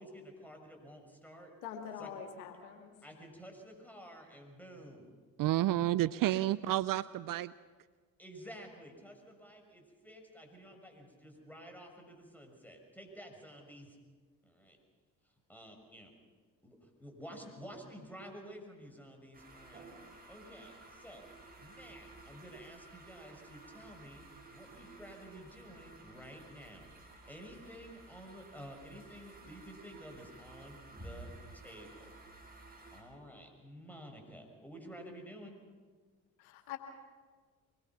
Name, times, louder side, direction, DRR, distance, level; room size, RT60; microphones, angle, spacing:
voice 1, 0.0-1.5 2.0-2.1 3.0-5.1 8.2-14.0 14.4-14.8 15.5-16.1 16.6-19.8 20.3-21.3 21.6-24.3 24.5-32.1 32.9-35.6, equal, 5° left, 3 dB, 6.4 m, -51 dB
voice 2, 1.6-2.9 36.4-36.8, left 8 dB, 80° left, 4 dB, 2.3 m, -44 dB
voice 3, 5.4-7.5, right 14 dB, 50° right, 17 dB, 0.6 m, -30 dB
sound 1, 19.3-33.0, right 2 dB, 20° right, 6.2 m, -54 dB
24.5 x 21.0 x 6.1 m, 1.5 s
hypercardioid pair, 50°, 42 cm